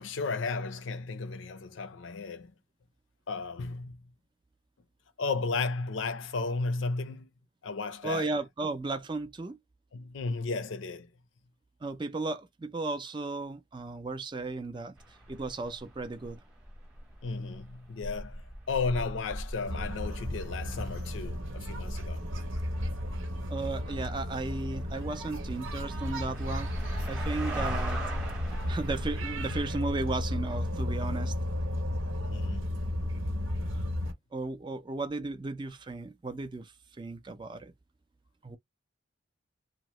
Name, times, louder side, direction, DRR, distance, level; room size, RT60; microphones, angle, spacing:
voice 1, 0.0-2.5 3.3-4.0 5.2-7.3 7.6-8.3 9.9-11.1 17.2-22.2 32.3-32.7, left 4 dB, 70° left, 0.5 m, -34 dB
voice 2, 8.0-9.6 11.8-15.0 15.3-16.4 23.5-26.7 27.0-28.0 28.7-31.3 34.3-36.7 37.0-37.7 38.4-38.6, right 3 dB, 25° right, 0.4 m, -35 dB
sound 1, 15.0-29.6, right 1 dB, 5° right, 0.9 m, -40 dB
sound 2, 19.7-34.1, left 1 dB, 90° right, 1.0 m, -34 dB
2.8 x 2.0 x 3.0 m
head